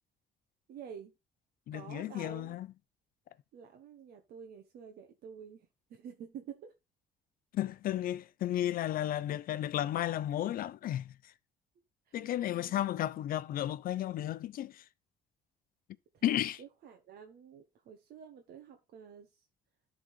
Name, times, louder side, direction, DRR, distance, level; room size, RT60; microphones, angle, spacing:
voice 1, 0.7-1.1 1.7-2.6 3.5-6.7 12.1-12.8 16.1-19.4, right 7 dB, 65° right, 1.3 m, -50 dB
voice 2, 1.7-2.7 7.5-11.1 12.1-14.8 16.2-16.6, left 12 dB, 60° left, 0.6 m, -33 dB
12.0 x 4.1 x 4.7 m
cardioid pair, 110°, 17 cm